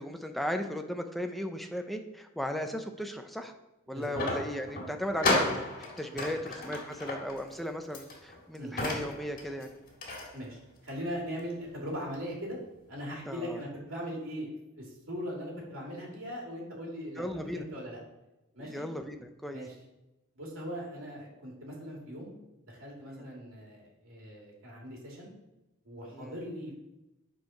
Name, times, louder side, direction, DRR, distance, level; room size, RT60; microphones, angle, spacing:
voice 1, 0.0-3.5 3.9-5.6 6.0-9.8 13.3-13.6 17.2-17.7 18.6-19.6 23.1-23.3 26.1-26.3, equal, ahead, 5 dB, 0.6 m, -36 dB
voice 2, 3.9-4.3 6.1-6.4 8.6-8.8 10.3-12.6 12.9-14.5 14.8-17.3 17.5-18.0 18.5-18.9 19.5-19.8 20.4-22.3 22.6-25.3 25.8-26.7, equal, 75° right, -2 dB, 2.7 m, -40 dB
sound 1, 4.1-10.3 10.9-11.0 11.4-11.5, left 2 dB, 45° left, 1.9 m, -33 dB
7.9 x 4.7 x 5.7 m, 0.96 s
head